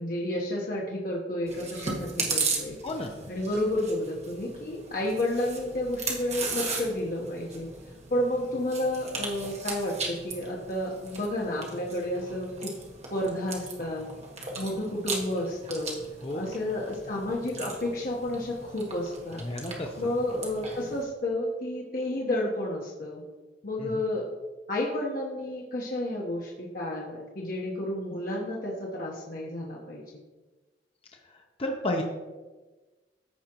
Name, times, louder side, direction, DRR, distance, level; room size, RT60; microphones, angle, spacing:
voice 1, 0.0-2.8 3.3-7.7 8.1-12.7 13.1-14.1 14.6-16.0 16.3-19.4 20.0-23.2 23.6-24.3 24.7-30.0, left 1 dB, 55° left, -3 dB, 1.1 m, -31 dB
Chewing mastication, 1.5-21.0, right 4 dB, 40° right, 1.4 m, -37 dB
voice 2, 19.4-20.1 23.8-23.9 31.6-32.0, left 1 dB, 35° left, 2 dB, 0.7 m, -31 dB
14.5 x 4.9 x 3.0 m, 1.3 s
head